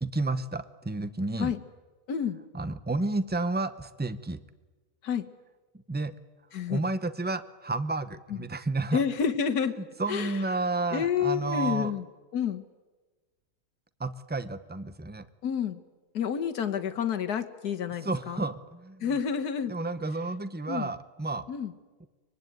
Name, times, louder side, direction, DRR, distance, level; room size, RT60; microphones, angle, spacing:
voice 1, 0.0-1.5 2.5-4.4 5.9-6.1 6.7-9.0 10.0-11.9 14.0-15.3 18.0-19.1 19.7-21.5, right 3 dB, 10° right, 13 dB, 0.5 m, -31 dB
voice 2, 2.1-2.4 5.0-5.3 6.5-6.8 8.3-8.4 8.9-9.7 10.1-10.4 10.9-12.0 12.3-12.6 15.4-15.8 16.1-18.5 19.0-19.7 20.7-20.9 21.5-21.7, left 7 dB, 90° left, 6 dB, 1.7 m, -29 dB
24.0 x 22.0 x 9.3 m, 1.3 s
omnidirectional pair, 1.6 m